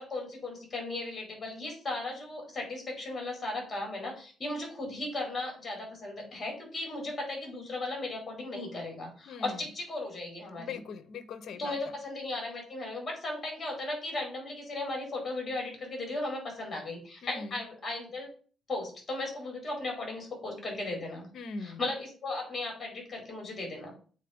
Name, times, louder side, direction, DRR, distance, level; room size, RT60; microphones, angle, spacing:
voice 1, 0.0-10.8 11.6-18.3 18.7-21.3 21.6-23.9, left 2 dB, 30° left, 4.4 m, -36 dB
voice 2, 9.3-9.6 10.6-11.8 17.2-17.6 21.3-21.8, left 4 dB, 65° left, 0.8 m, -40 dB
8.2 x 4.1 x 5.1 m
cardioid pair, 90°, 0 cm